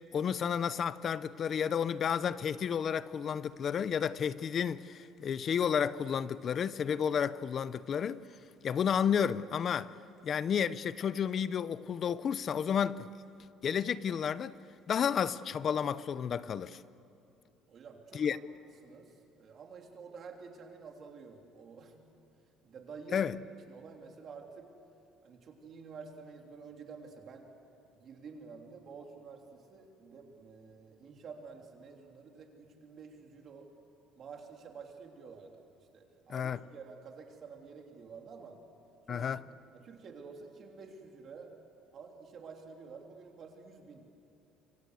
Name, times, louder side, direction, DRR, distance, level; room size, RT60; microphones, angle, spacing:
voice 1, 0.1-8.2 8.6-9.9 10.2-13.1 13.6-14.6 14.9-16.8 18.1-18.4 23.1-23.4 36.3-36.6 39.1-39.4, left 7 dB, 35° left, 0.6 m, -31 dB
voice 2, 17.7-18.4 18.8-21.9 22.6-23.3 23.7-24.7 25.2-27.5 27.9-33.7 34.1-35.6 35.9-38.6 39.1-39.3 39.8-41.5 41.9-44.2, right 5 dB, 35° right, 3.3 m, -50 dB
28.0 x 24.5 x 8.2 m
cardioid pair, 170°, 0 cm